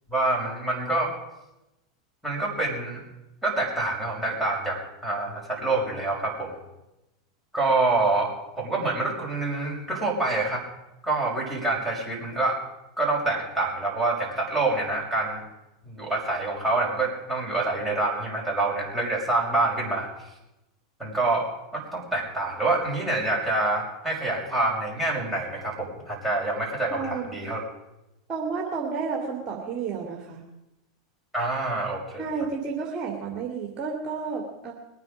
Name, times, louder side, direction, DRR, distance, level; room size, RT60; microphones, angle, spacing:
voice 1, 0.1-1.1 2.2-3.0 3.4-6.6 7.5-10.6 11.0-12.6 13.0-15.4 15.8-20.1 21.0-27.6 31.3-32.2, right 2 dB, ahead, -5 dB, 5.8 m, -26 dB
voice 2, 26.9-27.4 28.3-30.4 32.2-34.7, right 5 dB, 35° right, 0 dB, 2.5 m, -31 dB
21.5 x 9.5 x 5.1 m, 0.96 s
hypercardioid pair, 100°, 2 cm